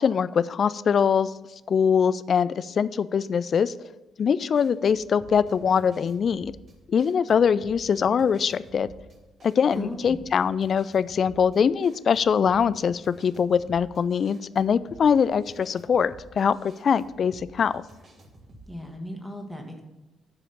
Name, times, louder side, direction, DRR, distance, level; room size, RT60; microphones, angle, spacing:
voice 1, 0.0-1.3 1.7-3.7 4.2-6.5 6.9-8.9 9.4-17.8, left 7 dB, 45° left, 17 dB, 0.3 m, -23 dB
sound 1, 4.6-18.8, right 2 dB, 45° right, 1.7 m, -51 dB
voice 2, 9.8-10.2 18.7-19.8, equal, ahead, 2 dB, 1.5 m, -36 dB
11.5 x 5.0 x 5.5 m, 1.1 s
figure-of-eight pair, 45°, 0 cm